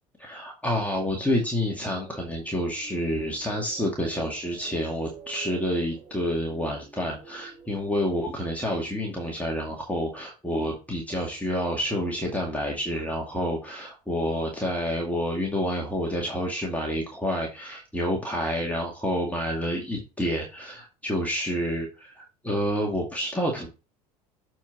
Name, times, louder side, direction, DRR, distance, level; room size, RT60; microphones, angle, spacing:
voice 1, 0.2-23.7, equal, 5° left, -1 dB, 2.2 m, -28 dB
sound 1, 1.6-9.7, right 6 dB, 70° right, 2.8 m, -48 dB
7.1 x 4.6 x 4.5 m, 0.30 s
hypercardioid pair, 75°, 21 cm